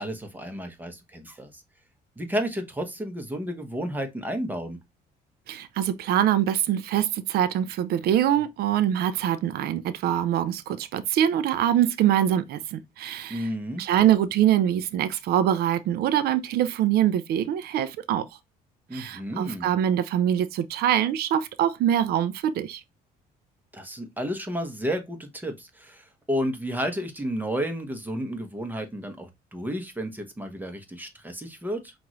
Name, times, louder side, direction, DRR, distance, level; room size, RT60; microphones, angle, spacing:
voice 1, 0.0-1.6 2.2-4.8 13.3-13.8 18.9-19.7 23.7-31.9, equal, 10° right, 1.0 m, -32 dB
voice 2, 5.5-13.5 13.8-18.3 18.9-22.8, right 10 dB, 70° right, 0.5 m, -24 dB
5.9 x 2.6 x 3.0 m
cardioid pair, 110°, 17 cm